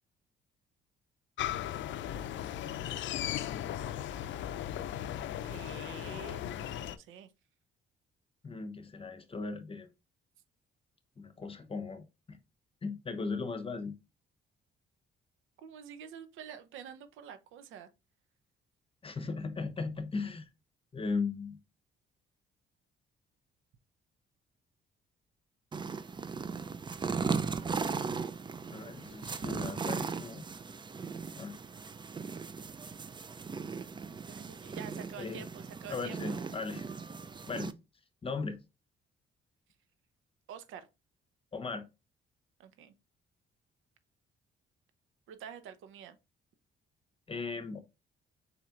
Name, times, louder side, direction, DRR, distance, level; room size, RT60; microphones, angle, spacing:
sound 1, 1.4-7.0, left 11 dB, 70° left, 0.5 m, -37 dB
voice 1, 5.4-7.3 15.6-17.9 27.0-28.0 28.9-29.0 34.1-36.4 40.5-40.9 42.6-42.9 45.3-46.2, right 8 dB, 90° right, 0.7 m, -48 dB
voice 2, 8.4-9.9 11.2-12.4 12.8-13.9 19.0-20.5 20.9-21.6 28.7-30.4 31.4-31.6 35.2-35.5 35.9-36.9 37.5-37.7 38.2-38.6 41.5-41.8 47.3-47.8, left 4 dB, 30° left, 0.9 m, -37 dB
sound 2, 25.7-37.7, right 5 dB, 25° right, 0.4 m, -37 dB
4.2 x 4.2 x 2.5 m
cardioid pair, 90°, 20 cm